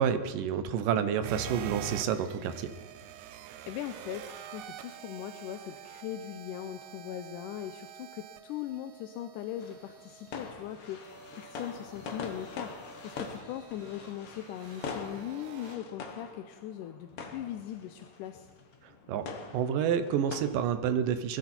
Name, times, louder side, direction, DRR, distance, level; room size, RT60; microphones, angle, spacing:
voice 1, 0.0-2.7 19.1-19.3 19.5-21.4, right 8 dB, 75° right, 10 dB, 2.3 m, -29 dB
sound 1, 1.2-15.8, right 10 dB, 90° right, 1.6 m, -47 dB
voice 2, 3.6-18.5, left 11 dB, 80° left, 8 dB, 1.9 m, -40 dB
sound 2, 9.6-20.4, left 4 dB, 55° left, 1.6 m, -44 dB
20.5 x 14.0 x 4.4 m, 1.2 s
omnidirectional pair, 4.3 m